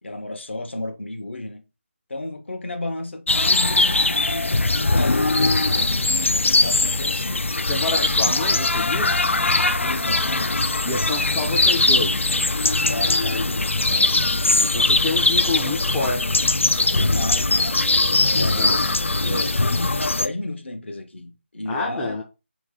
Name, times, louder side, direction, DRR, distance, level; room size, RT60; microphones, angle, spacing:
voice 1, 0.0-1.6 2.1-7.4 7.9-8.3 9.8-10.6 12.8-14.4 17.0-17.9 18.3-18.9 19.2-22.2, left 2 dB, 65° left, 1.1 m, -33 dB
sound 1, 3.3-20.3, left 2 dB, 85° left, 0.4 m, -20 dB
voice 2, 7.6-9.2 10.8-12.3 14.6-16.4 18.4-18.8 19.2-19.5 21.7-22.2, left 2 dB, 5° left, 0.3 m, -28 dB
3.7 x 3.1 x 3.6 m
figure-of-eight pair, 160°, 7 cm